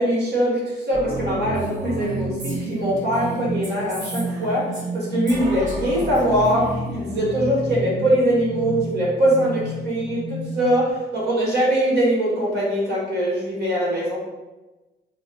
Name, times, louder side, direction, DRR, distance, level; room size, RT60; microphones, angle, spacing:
voice 1, 0.0-14.2, right 1 dB, 55° right, -4 dB, 1.5 m, -22 dB
sound 1, 0.9-10.9, right 1 dB, 20° right, 1.5 m, -30 dB
Female speech woman speaking, 1.5-5.0 5.3-7.1, right 1 dB, 40° right, 1.3 m, -38 dB
3.0 x 2.0 x 4.1 m, 1.1 s
cardioid pair, 90°, 20 cm